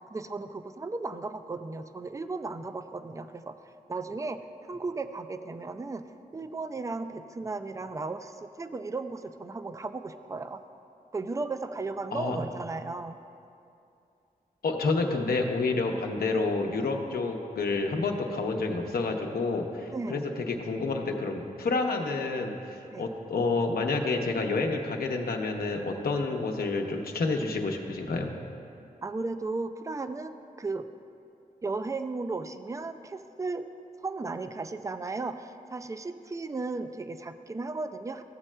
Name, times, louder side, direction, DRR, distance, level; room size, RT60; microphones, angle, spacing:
voice 1, 0.0-4.4 4.7-6.1 6.3-10.6 11.1-13.2 19.9-20.3 22.9-23.1 29.0-30.9 31.6-33.7 34.0-38.2, right 3 dB, 20° right, 10 dB, 0.3 m, -35 dB
voice 2, 14.6-28.3, left 3 dB, 85° left, 2 dB, 0.8 m, -29 dB
15.0 x 7.2 x 2.2 m, 2.6 s
wide cardioid pair, 105°, 15 cm